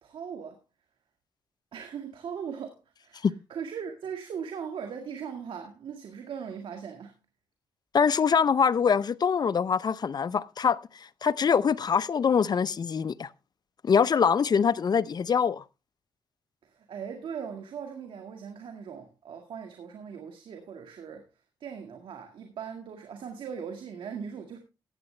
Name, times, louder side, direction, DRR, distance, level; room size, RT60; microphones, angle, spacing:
voice 1, 0.0-0.6 1.7-7.2 16.6-21.3 21.6-24.6, right 7 dB, 75° right, 1.8 m, -39 dB
voice 2, 7.9-10.8 11.2-13.3 13.8-15.6, left 6 dB, 50° left, 0.7 m, -24 dB
15.5 x 8.8 x 3.3 m
cardioid pair, 65°, 9 cm